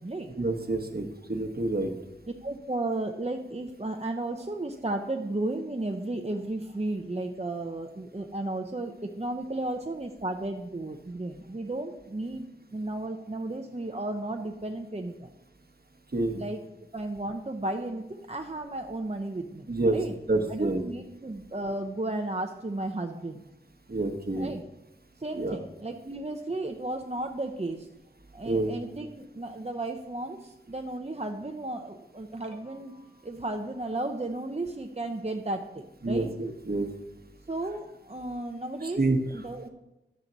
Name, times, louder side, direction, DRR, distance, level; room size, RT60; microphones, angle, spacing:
voice 1, 0.3-1.9 16.1-16.4 19.7-20.0 20.3-20.8 23.9-24.5 25.3-25.6 28.4-28.7 36.0-36.9 39.0-39.2, right 2 dB, 50° right, 6 dB, 1.1 m, -28 dB
voice 2, 2.4-15.3 16.3-16.6 16.9-20.1 20.5-23.4 24.3-24.6 25.2-27.9 28.3-36.3 37.5-39.7, right 2 dB, 30° right, 4 dB, 0.7 m, -34 dB
11.0 x 7.3 x 4.0 m, 0.93 s
wide cardioid pair, 55°, 21 cm